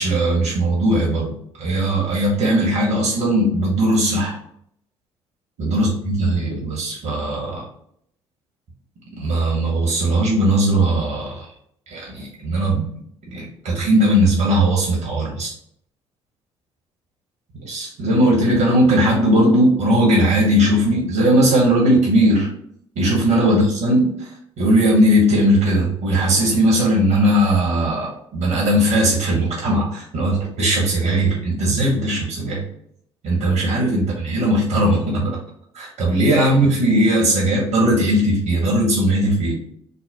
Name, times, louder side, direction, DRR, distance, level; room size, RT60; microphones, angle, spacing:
voice 1, 0.0-1.3 1.6-4.3 5.6-7.6 9.2-11.4 11.9-12.9 13.3-15.5 17.6-22.5 22.9-24.3 24.6-32.6 33.2-35.4 35.7-39.6, right 1 dB, 65° right, -3 dB, 1.4 m, -18 dB
4.1 x 2.1 x 4.4 m, 0.69 s
hypercardioid pair, 50°, 14 cm